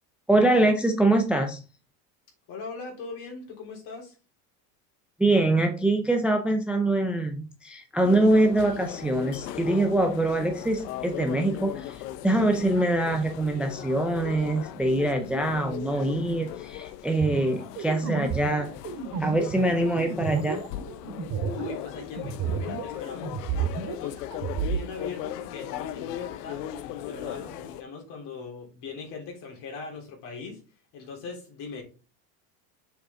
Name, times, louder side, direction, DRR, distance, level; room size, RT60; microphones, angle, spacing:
voice 1, 0.3-1.6 5.2-18.7 19.2-20.6, right 1 dB, 5° right, 5 dB, 0.5 m, -24 dB
voice 2, 2.5-4.1 21.3-24.4 24.6-26.6 27.0-30.6 30.9-31.8, left 4 dB, 55° left, 0 dB, 3.7 m, -40 dB
sound 1, 8.0-27.8, left 12 dB, 80° left, 0.8 m, -38 dB
sound 2, 17.2-23.0 23.2-24.8, right 7 dB, 50° right, 3.1 m, -31 dB
6.9 x 5.0 x 3.8 m, 0.34 s
supercardioid pair, 125°, 47 cm